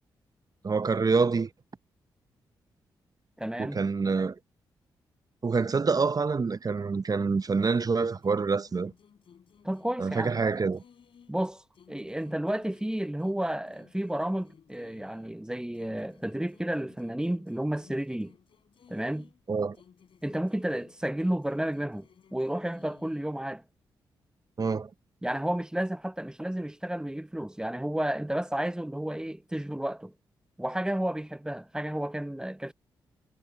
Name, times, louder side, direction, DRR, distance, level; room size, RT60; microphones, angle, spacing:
voice 1, 0.6-1.5 3.6-4.4 5.4-8.9 10.0-10.8 19.5-19.8 24.6-24.9, right 4 dB, 40° right, 0.8 m, -26 dB
voice 2, 3.4-3.8 9.6-10.3 11.3-11.6 11.9-18.3 18.9-19.3 20.2-23.6 25.2-30.1 30.6-32.7, right 1 dB, 5° right, 1.0 m, -31 dB
sound 1, 7.7-11.4 11.7-15.4 15.7-19.4 19.7-23.4, left 7 dB, 65° left, 3.7 m, -59 dB
hypercardioid pair, 40°, 10 cm